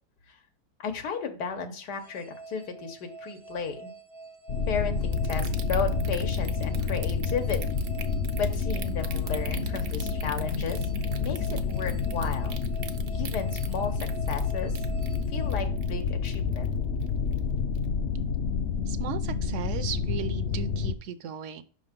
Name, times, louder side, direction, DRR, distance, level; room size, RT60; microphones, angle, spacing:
voice 1, 0.8-3.9 4.7-7.6 8.4-10.8 11.2-12.6 13.1-14.0 14.3-14.7 15.3-16.7, left 6 dB, 90° left, 5 dB, 1.7 m, -34 dB
sound 1, 1.9-16.3, right 3 dB, 40° right, 0.3 m, -46 dB
sound 2, 4.5-20.9, left 5 dB, 65° left, 0.6 m, -29 dB
sound 3, 5.1-16.7 17.0-17.4 17.7-17.9, right 9 dB, 85° right, 1.4 m, -42 dB
voice 2, 18.9-21.6, right 8 dB, 65° right, 13 dB, 0.7 m, -36 dB
5.7 x 3.9 x 5.1 m, 0.41 s
omnidirectional pair, 1.7 m